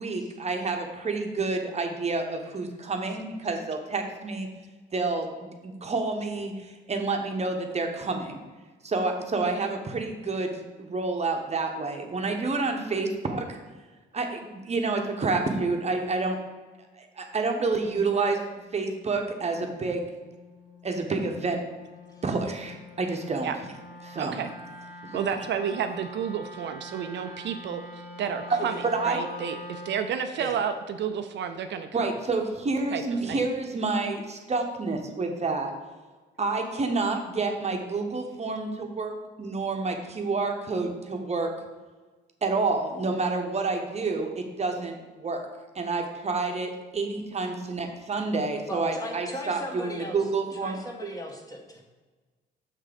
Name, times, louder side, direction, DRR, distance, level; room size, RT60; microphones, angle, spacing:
voice 1, 0.0-4.5 4.9-8.4 8.8-13.6 14.1-16.4 17.0-18.4 18.7-20.1 20.8-21.6 22.2-23.5 24.0-24.4 25.0-25.1 28.5-28.6 28.8-29.2 31.9-35.7 36.4-41.5 42.4-45.5 45.7-51.1, right 3 dB, 35° right, 3 dB, 0.9 m, -29 dB
Wind instrument woodwind instrument, 18.6-30.2, left 1 dB, 65° left, 2.0 m, -45 dB
voice 2, 24.2-24.5 25.1-32.1 32.9-33.0 33.3-33.4, right 7 dB, 65° right, 7 dB, 0.5 m, -31 dB
voice 3, 48.7-50.2 50.5-51.8, equal, 15° left, 1 dB, 1.4 m, -38 dB
6.6 x 3.6 x 5.1 m, 1.3 s
cardioid pair, 90°, 20 cm